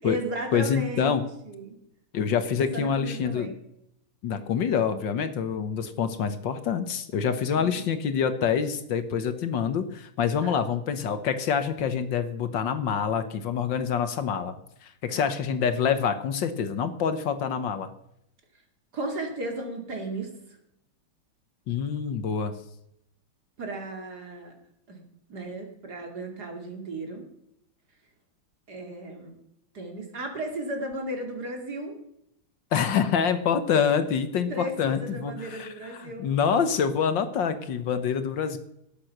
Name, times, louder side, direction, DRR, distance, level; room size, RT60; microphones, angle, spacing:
voice 1, 0.0-1.8 2.5-3.5 7.5-7.8 10.4-10.6 15.1-15.2 18.9-20.6 23.6-24.6 24.9-27.2 28.7-29.3 29.7-32.0 34.5-36.3, right 1 dB, 50° right, 3 dB, 3.1 m, -35 dB
voice 2, 0.5-1.2 2.1-3.5 4.2-14.5 14.8-17.9 21.7-22.5 32.7-38.6, left 7 dB, 65° left, 10 dB, 1.6 m, -26 dB
18.0 x 8.0 x 5.9 m, 0.77 s
omnidirectional pair, 2.3 m